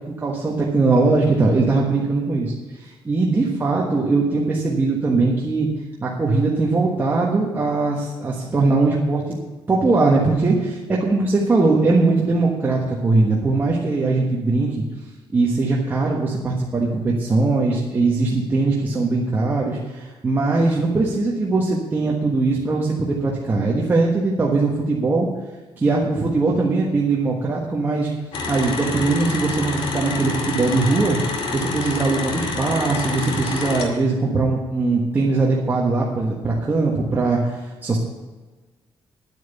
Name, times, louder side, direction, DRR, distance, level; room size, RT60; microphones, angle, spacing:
voice 1, 0.1-5.7 6.0-9.4 9.7-14.8 15.3-25.3 25.8-28.1 28.5-31.2 31.5-38.0, right 3 dB, 20° right, -4 dB, 1.4 m, -20 dB
sound 1, 28.3-33.9, left 3 dB, 75° left, 2.3 m, -27 dB
10.5 x 9.1 x 6.9 m, 1.2 s
cardioid pair, 170°, 9 cm